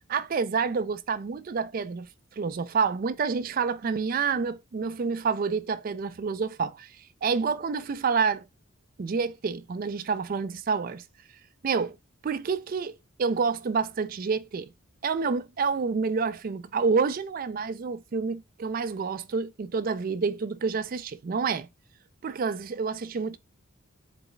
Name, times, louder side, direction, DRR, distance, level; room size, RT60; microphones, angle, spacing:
voice 1, 0.1-2.1 2.4-8.5 9.0-11.0 11.6-12.0 12.2-14.7 15.0-21.7 22.2-23.4, right 5 dB, 40° right, 0.3 m, -28 dB
4.1 x 2.2 x 3.9 m
head